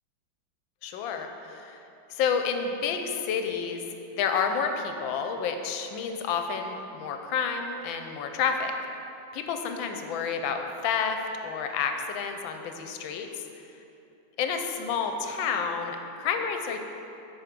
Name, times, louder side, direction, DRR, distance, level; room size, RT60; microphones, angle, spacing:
voice 1, 0.8-1.8 2.1-3.8 4.1-8.7 9.3-13.4 14.4-16.8, left 6 dB, 85° left, 5 dB, 1.4 m, -30 dB
8.9 x 4.6 x 5.1 m, 2.9 s
omnidirectional pair, 2.1 m